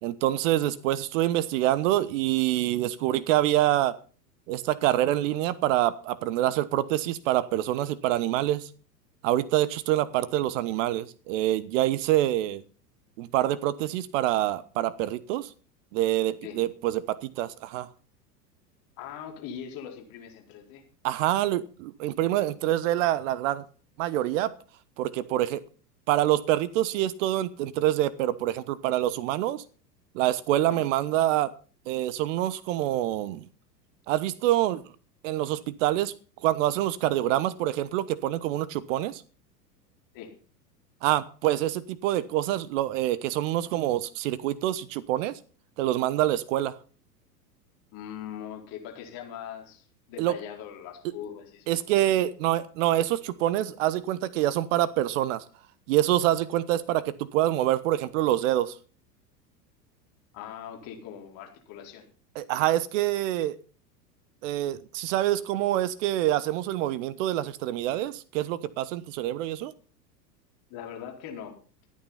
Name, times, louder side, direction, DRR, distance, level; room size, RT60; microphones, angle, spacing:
voice 1, 0.0-4.0 4.5-8.7 9.2-12.6 13.2-15.5 15.9-17.9 21.0-23.6 24.0-24.5 25.0-25.6 26.1-29.6 30.1-31.5 31.9-33.5 34.1-34.8 35.2-36.1 36.4-39.2 41.0-45.4 45.8-46.8 50.2-50.3 51.7-55.4 55.9-58.7 62.3-63.6 64.4-69.7, right 14 dB, 50° right, 1.1 m, -26 dB
voice 2, 10.1-10.5 16.4-16.6 19.0-20.8 30.7-30.8 40.1-40.3 47.9-51.7 60.3-62.0 70.7-71.5, left 9 dB, 40° left, 4.4 m, -41 dB
14.0 x 9.3 x 5.7 m
figure-of-eight pair, 90°, 50 cm